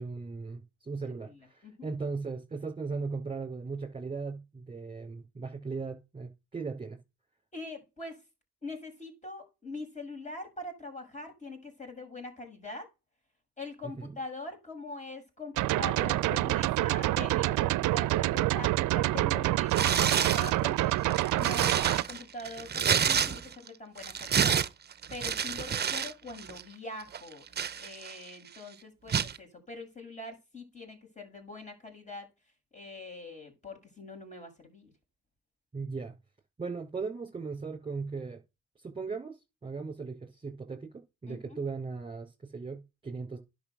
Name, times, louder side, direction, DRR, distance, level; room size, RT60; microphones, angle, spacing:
voice 1, 0.0-7.0 13.8-14.2 35.7-36.2 36.6-38.4 38.8-43.4, right 4 dB, 15° right, 5.0 m, -38 dB
voice 2, 1.2-1.9 7.5-8.2 8.6-12.9 13.6-24.6 25.1-27.5 27.8-32.3 32.7-34.9 41.3-41.6, left 2 dB, 25° left, 7.2 m, -43 dB
sound 1, 15.6-22.0, right 17 dB, 80° right, 0.5 m, -27 dB
Tearing, 19.7-20.5 21.0-23.7 24.0-26.1 26.4-26.6 27.1-28.3 29.1-29.4, right 7 dB, 35° right, 0.7 m, -29 dB
11.0 x 6.4 x 6.8 m
cardioid pair, 90°, 30 cm